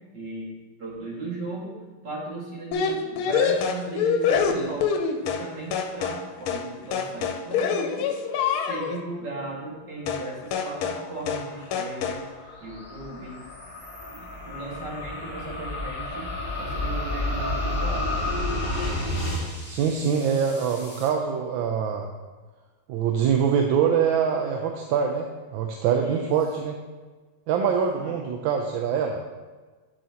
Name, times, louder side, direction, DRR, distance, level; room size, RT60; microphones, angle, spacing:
voice 1, 0.1-0.5 0.8-1.8 2.0-4.9 5.2-8.1 8.5-12.2 12.6-13.4 14.1-18.2 26.0-26.3 28.0-28.1, right 2 dB, 55° right, -4 dB, 2.5 m, -37 dB
sound 1, 2.7-5.5 5.7-6.2 6.5-6.7 6.9-9.0 10.1-10.3 10.5-11.0 11.3-11.5 11.7-12.2, left 6 dB, 90° left, 1.5 m, -25 dB
sound 2, 9.9-21.1, left 1 dB, 5° left, 1.4 m, -47 dB
sound 3, 11.6-19.4, left 1 dB, 25° left, 1.3 m, -30 dB
voice 2, 19.7-22.1 22.9-26.8 27.5-29.2, right 7 dB, 75° right, 3 dB, 1.3 m, -24 dB
8.5 x 7.3 x 2.9 m, 1.4 s
omnidirectional pair, 2.3 m